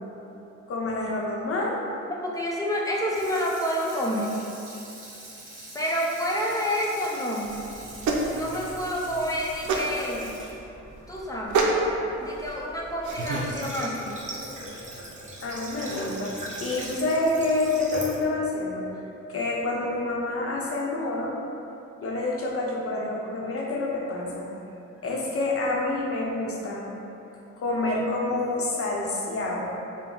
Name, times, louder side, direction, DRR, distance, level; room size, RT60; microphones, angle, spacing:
voice 1, 0.7-1.8 15.4-18.8 19.3-21.3 22.0-24.4 25.0-26.8 27.6-29.6, left 2 dB, 50° left, -3 dB, 0.8 m, -28 dB
voice 2, 2.2-4.4 5.7-7.6 8.3-10.3 11.1-11.7 12.2-14.2, equal, 10° left, -3 dB, 0.6 m, -28 dB
Water tap faucet / Sink (filling or washing), 2.9-12.1 12.5-12.6, right 2 dB, 45° right, 1.2 m, -45 dB
sound 1, 7.4-13.5, right 3 dB, 85° right, 0.6 m, -29 dB
Water / Water tap faucet, 13.1-18.2, right 1 dB, 25° right, 0.9 m, -38 dB
5.9 x 2.2 x 3.8 m, 3.0 s
cardioid pair, 110°, 29 cm